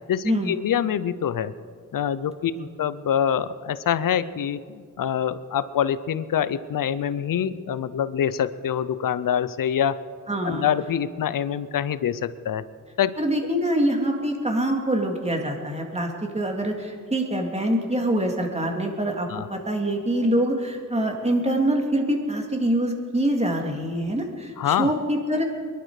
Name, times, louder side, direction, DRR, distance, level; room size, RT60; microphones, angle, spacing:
voice 1, 0.1-1.5 1.9-2.5 2.8-10.0 10.4-12.6 13.0-13.1 19.3-19.5 24.6-24.9, left 9 dB, 75° left, 15 dB, 0.7 m, -25 dB
voice 2, 10.3-10.6 13.2-25.4, right 1 dB, 20° right, 2 dB, 2.7 m, -25 dB
23.0 x 11.5 x 4.9 m, 2.1 s
cardioid pair, 75°, 34 cm